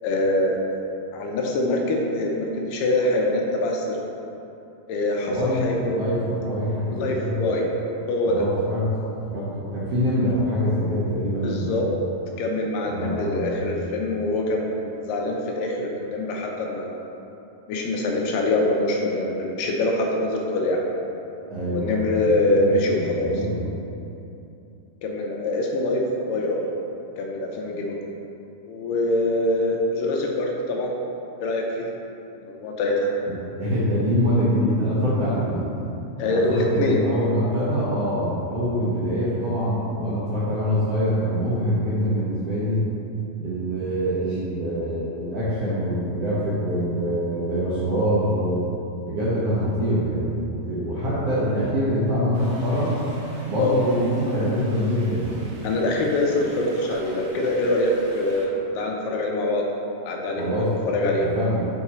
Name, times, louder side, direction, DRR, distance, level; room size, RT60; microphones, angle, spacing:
voice 1, 0.0-0.6 1.1-4.0 4.9-6.0 6.9-7.7 8.1-8.4 11.4-11.9 12.4-17.1 17.7-20.8 21.7-23.4 25.0-26.7 27.2-28.0 28.7-30.9 31.4-31.9 32.4-33.1 36.2-37.1 53.6-53.7 55.6-59.6 60.0-61.3, left 1 dB, 80° left, 0 dB, 2.2 m, -24 dB
voice 2, 5.2-5.6 5.9-7.4 8.2-8.8 9.3-11.8 12.9-13.5 21.5-22.2 22.5-23.8 33.3-35.7 36.2-42.8 43.4-48.6 49.0-53.0 53.5-55.5 60.4-61.7, equal, 70° right, -10 dB, 1.5 m, -24 dB
sound 1, 52.3-58.5, right 1 dB, 90° right, 1.3 m, -44 dB
5.9 x 4.7 x 4.2 m, 2.8 s
omnidirectional pair, 4.0 m